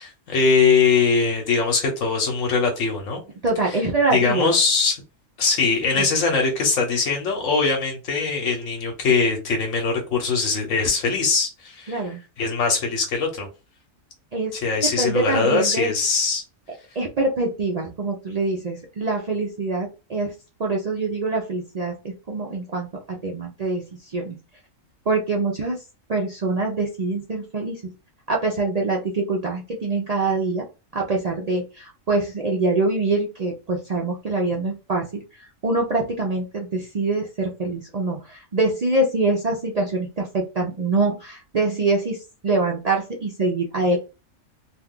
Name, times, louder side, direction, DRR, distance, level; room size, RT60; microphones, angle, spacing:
voice 1, 0.0-3.2 3.6-3.8 4.1-5.0 5.4-13.5 14.5-16.4, left 4 dB, 85° left, 2 dB, 1.2 m, -21 dB
voice 2, 3.4-4.5 5.9-6.1 11.9-12.2 14.3-14.5 14.8-15.9 17.0-20.3 20.6-24.4 25.1-25.8 26.1-27.8 28.3-30.6 30.9-35.2 35.6-44.0, right 3 dB, 60° right, -1 dB, 0.4 m, -24 dB
2.5 x 2.3 x 3.5 m, 0.31 s
omnidirectional pair, 1.3 m